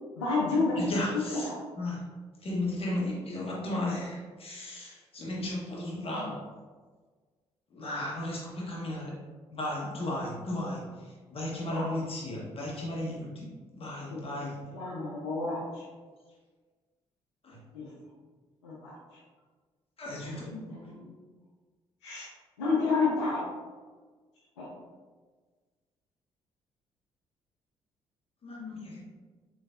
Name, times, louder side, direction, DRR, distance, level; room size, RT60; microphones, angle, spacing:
voice 1, 0.2-0.8 1.1-1.4 11.7-11.9 14.1-14.2 14.7-15.9 17.7-17.9 18.6-19.2 20.2-21.1 22.0-22.3 22.6-23.5 24.6-24.7, left 3 dB, 85° left, -5 dB, 0.5 m, -30 dB
voice 2, 0.8-1.5 1.8-2.0 2.4-6.4 7.7-9.2 9.5-14.6 17.4-17.6 20.0-20.5 20.8-20.9 28.4-29.0, left 1 dB, 40° left, -4 dB, 1.2 m, -35 dB
3.2 x 3.1 x 2.5 m, 1.4 s
hypercardioid pair, 45°, 14 cm